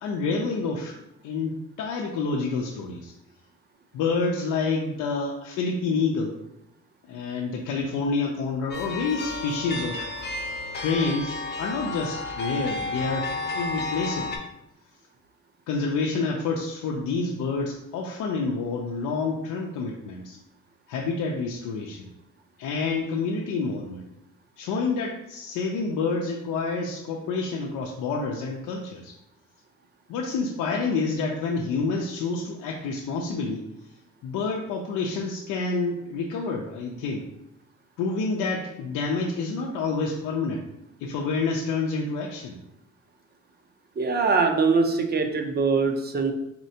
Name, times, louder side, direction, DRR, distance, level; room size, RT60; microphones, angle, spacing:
voice 1, 0.0-1.0 1.2-3.1 3.9-6.4 7.1-10.1 10.8-14.4 15.7-20.4 20.9-22.1 22.6-24.0 24.6-29.1 30.1-33.6 34.2-37.2 38.0-40.6 41.0-42.6, left 4 dB, 85° left, -1 dB, 0.5 m, -28 dB
sound 1, 8.7-14.4, left 3 dB, 35° left, 0.7 m, -32 dB
voice 2, 44.0-46.3, right 4 dB, 35° right, 5 dB, 0.6 m, -22 dB
4.3 x 3.2 x 2.8 m, 0.84 s
cardioid pair, 90°, 30 cm